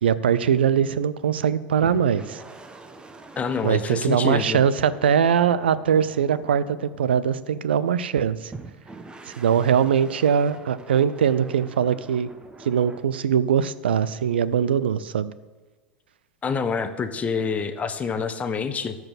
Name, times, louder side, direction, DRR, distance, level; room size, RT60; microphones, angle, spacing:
voice 1, 0.0-2.4 3.6-8.5 9.4-12.3 12.6-15.3, right 8 dB, 75° right, 16 dB, 0.6 m, -21 dB
sound 1, 1.8-7.7 8.5-13.0, right 3 dB, 15° right, 1.1 m, -45 dB
voice 2, 3.4-4.6 16.4-19.0, left 5 dB, 25° left, 10 dB, 1.1 m, -27 dB
13.5 x 4.8 x 7.7 m, 1.3 s
figure-of-eight pair, 80°, 6 cm